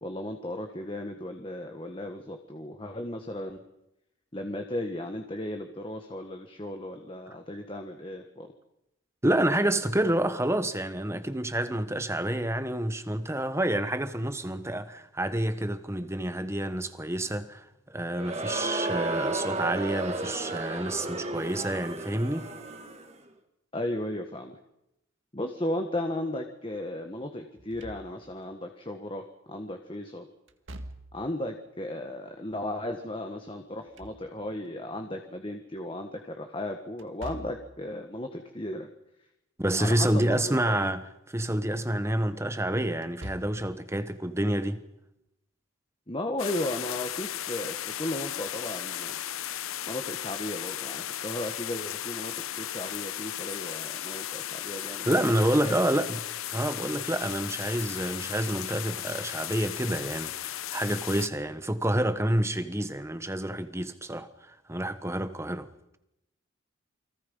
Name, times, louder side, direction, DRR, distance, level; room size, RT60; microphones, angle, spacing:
voice 1, 0.0-3.6 4.3-8.5 23.7-24.6 25.3-30.3 31.1-38.9 39.8-40.8 46.1-49.2 49.9-55.1 55.6-55.7, left 1 dB, 25° left, 1.6 m, -35 dB
voice 2, 9.2-22.5 39.6-44.8 55.1-56.2 56.5-65.7, right 1 dB, 15° right, 1.2 m, -28 dB
Crowd, 18.1-23.1, right 2 dB, 30° right, 2.1 m, -33 dB
Slam / Thump thud, 27.6-28.5 30.5-31.4 33.6-34.7 37.0-37.8 39.9-40.4 40.8-40.9 42.9-43.7, right 1 dB, 60° right, 2.0 m, -45 dB
sound 1, 46.4-61.3, left 12 dB, 75° left, 0.8 m, -36 dB
29.5 x 23.0 x 5.5 m
head